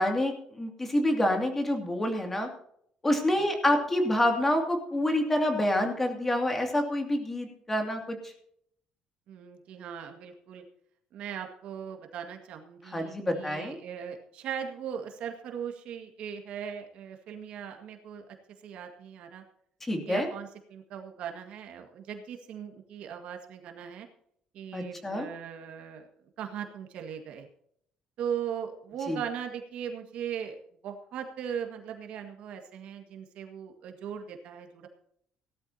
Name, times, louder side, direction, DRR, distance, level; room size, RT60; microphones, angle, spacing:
voice 1, 0.0-2.5 3.0-8.2 12.9-13.8 19.8-20.3 24.7-25.3 29.1-29.2, left 1 dB, 10° left, 3 dB, 2.5 m, -27 dB
voice 2, 9.3-10.6 11.1-18.2 18.6-19.4 20.1-24.1 24.5-26.1 26.4-27.5 28.2-30.6 30.8-34.9, right 8 dB, 60° right, 4 dB, 1.8 m, -39 dB
17.5 x 13.0 x 2.9 m, 0.67 s
cardioid pair, 165°, 2 cm